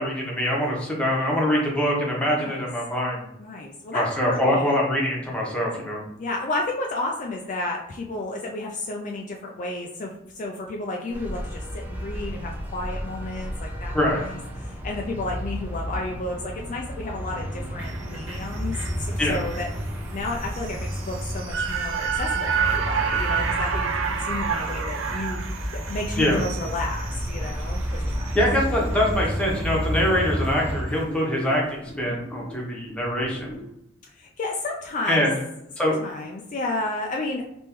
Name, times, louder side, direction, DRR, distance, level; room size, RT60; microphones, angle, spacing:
voice 1, 0.0-3.2 3.9-6.0 13.9-14.2 19.2-19.4 26.2-26.4 28.3-33.6 35.1-35.3 35.8-36.0, equal, 5° left, -3 dB, 0.9 m, -24 dB
voice 2, 2.3-2.7 3.4-4.7 6.2-28.4 34.1-35.2 35.8-37.5, left 2 dB, 40° left, 0 dB, 0.4 m, -32 dB
sound 1, 11.1-30.8, equal, 10° right, 0.5 m, -31 dB
sound 2, 17.8-30.1 30.5-30.6, right 6 dB, 75° right, 0.5 m, -31 dB
sound 3, 28.7-33.7, equal, 30° right, 0.9 m, -42 dB
3.5 x 3.0 x 3.0 m, 0.83 s
head